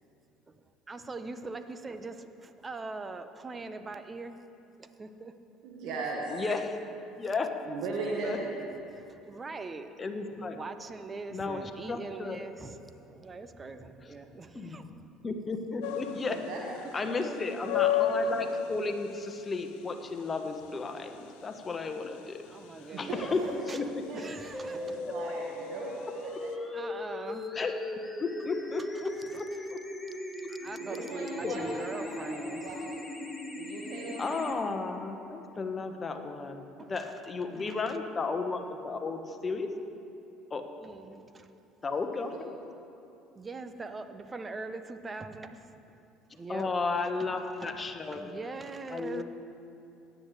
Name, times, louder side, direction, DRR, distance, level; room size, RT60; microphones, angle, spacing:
voice 1, 0.5-4.4 4.8-5.3 6.5-6.7 8.9-9.9 10.5-15.0 17.2-17.6 22.4-23.3 23.7-23.8 24.1-25.0 26.7-27.5 29.3-29.4 30.5-32.7 36.8-37.1 37.4-38.0 40.8-41.5 43.3-45.8 46.3-46.7 47.2-49.2, right 3 dB, 25° right, 9 dB, 0.8 m, -42 dB
voice 2, 5.6-6.3 7.7-8.6 16.3-16.6 22.9-23.5 24.1-24.2 24.7-26.0 26.2-26.5 30.8-33.0 33.5-34.4 42.3-42.4, right 3 dB, 60° right, -2 dB, 1.4 m, -38 dB
voice 3, 6.3-6.8 7.2-7.5 8.2-8.4 10.0-10.6 11.3-11.6 11.9-12.4 14.5-14.8 15.2-16.4 16.9-21.2 21.4-22.4 23.0-23.4 23.7-23.8 27.5-27.7 28.2-29.8 30.6-30.9 31.4-31.8 34.2-36.6 36.9-39.7 40.5-40.6 41.8-42.5 46.5-48.3 48.9-49.2, left 4 dB, 30° left, 6 dB, 1.2 m, -34 dB
sound 1, 15.8-26.5, left 8 dB, 70° left, 0.6 m, -35 dB
sound 2, 24.5-34.5, left 1 dB, 15° left, 1.4 m, -38 dB
17.5 x 10.0 x 3.3 m, 2.7 s
hypercardioid pair, 60°, 0 cm